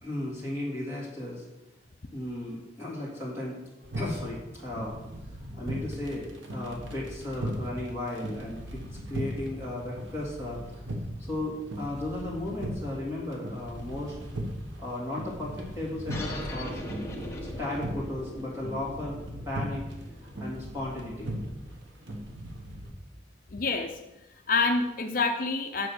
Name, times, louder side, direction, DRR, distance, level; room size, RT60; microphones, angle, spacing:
voice 1, 0.0-1.4 2.1-3.6 3.9-5.0 5.5-8.8 9.1-10.8 11.3-14.2 14.8-16.8 17.4-19.2 19.4-19.8 20.2-21.4, left 1 dB, 15° right, -6 dB, 3.2 m, -35 dB
sound 1, 3.8-22.9, right 1 dB, 85° right, 1.5 m, -38 dB
sound 2, 16.1-21.2, left 1 dB, 15° left, 1.2 m, -40 dB
voice 2, 23.5-24.0 24.5-25.9, left 3 dB, 45° left, 4 dB, 0.6 m, -27 dB
8.2 x 6.3 x 6.4 m, 0.99 s
head